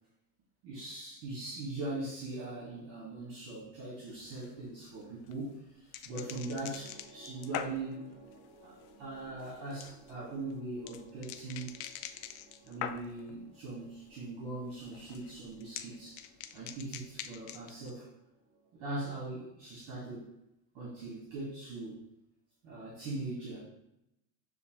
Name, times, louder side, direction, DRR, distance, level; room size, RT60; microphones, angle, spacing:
voice 1, 0.6-8.1 8.6-11.7 12.7-16.2 16.5-18.1 18.7-20.3 20.7-22.0 22.6-23.7, right 2 dB, 60° right, -6 dB, 1.8 m, -41 dB
sound 1, 4.1-13.4 13.7-14.3 14.5-17.9, left 10 dB, 80° left, 0.5 m, -45 dB
sound 2, 6.1-20.1, right 2 dB, 30° right, 1.7 m, -59 dB
6.4 x 2.8 x 3.0 m, 0.85 s
cardioid pair, 170°, 42 cm